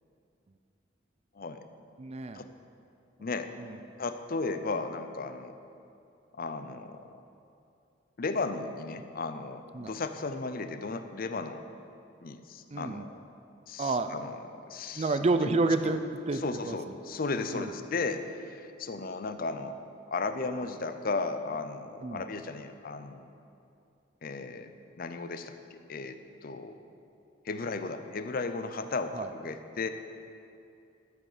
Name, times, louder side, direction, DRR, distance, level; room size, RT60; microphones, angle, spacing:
voice 1, 1.3-1.6 2.3-2.5 3.2-3.5 4.0-5.6 6.3-7.2 8.2-11.7 12.2-13.2 13.7-15.1 15.4-15.5 16.3-19.8 20.1-23.3 24.2-25.6 25.9-26.8 27.4-29.9, left 3 dB, 50° left, 9 dB, 0.6 m, -35 dB
voice 2, 2.0-2.4 3.6-3.8 9.7-9.9 12.7-13.1 13.8-14.1 14.9-16.8 17.5-17.7 22.0-22.2 29.1-29.3, right 3 dB, 35° right, 9 dB, 0.5 m, -29 dB
13.5 x 7.7 x 5.0 m, 2.6 s
head